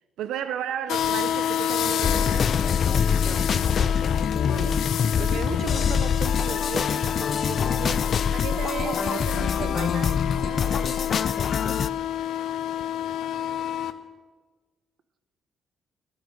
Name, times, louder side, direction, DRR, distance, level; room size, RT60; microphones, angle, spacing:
voice 1, 0.2-2.7 8.3-10.2, right 9 dB, 90° right, 0.5 m, -33 dB
sound 1, 0.9-13.9, left 10 dB, 75° left, 0.8 m, -29 dB
sound 2, 2.0-11.9, left 7 dB, 45° left, 0.5 m, -25 dB
voice 2, 3.2-3.9 4.4-4.9 5.2-8.0 10.3-11.0, right 6 dB, 55° right, 1.1 m, -37 dB
13.0 x 13.0 x 6.5 m
cardioid pair, 135°, 0 cm